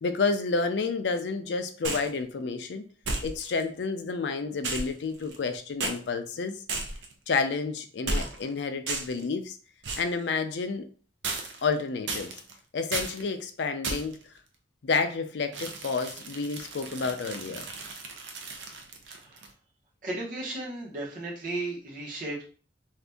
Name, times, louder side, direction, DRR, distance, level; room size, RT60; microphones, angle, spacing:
voice 1, 0.0-2.9 3.2-6.6 7.3-9.6 10.0-10.9 11.6-12.3 12.7-14.2 14.8-17.7, left 4 dB, 75° left, 8 dB, 0.4 m, -30 dB
sound 1, 1.8-2.2 3.0-3.6 4.6-5.5 5.8-6.0 6.7-7.1 8.1-8.5 8.9-9.2 9.8-10.1 11.2-11.7 12.1-12.5 12.9-13.2 13.8-14.2 15.5-19.5, right 3 dB, 90° right, 0.6 m, -34 dB
voice 2, 19.1-19.4 20.0-22.4, right 2 dB, 50° right, -4 dB, 1.1 m, -35 dB
2.7 x 2.5 x 3.4 m, 0.41 s
head